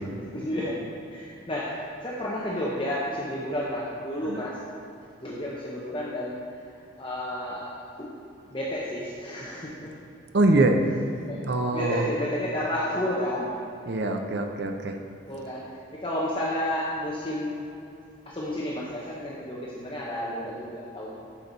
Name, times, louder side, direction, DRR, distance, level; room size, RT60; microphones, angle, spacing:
voice 1, 0.1-0.8 1.1-4.6 5.2-8.2 8.5-9.9 11.3-13.5 15.3-17.7 18.3-21.3, left 1 dB, 25° left, -5 dB, 0.9 m, -31 dB
voice 2, 10.3-10.8 11.5-12.1 13.9-15.0, right 2 dB, 55° right, 5 dB, 0.6 m, -23 dB
13.5 x 5.8 x 4.0 m, 2.6 s
head